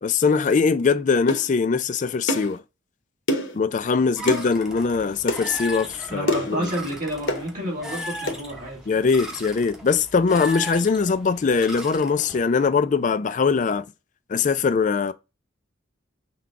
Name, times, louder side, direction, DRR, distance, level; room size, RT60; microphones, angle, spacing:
voice 1, 0.0-2.6 3.5-6.7 8.9-13.8 14.3-15.1, left 5 dB, 40° left, 0.3 m, -22 dB
sound 1, 1.3-1.5 2.3-2.5 3.3-3.6 4.3-4.5 5.3-5.4 6.3-6.6 7.3-7.5 8.3-8.4, left 1 dB, 75° left, 1.0 m, -25 dB
sound 2, 4.2-12.4, left 1 dB, 5° right, 0.7 m, -37 dB
voice 2, 6.1-8.9, equal, 40° right, 2.3 m, -30 dB
5.8 x 2.3 x 3.6 m
head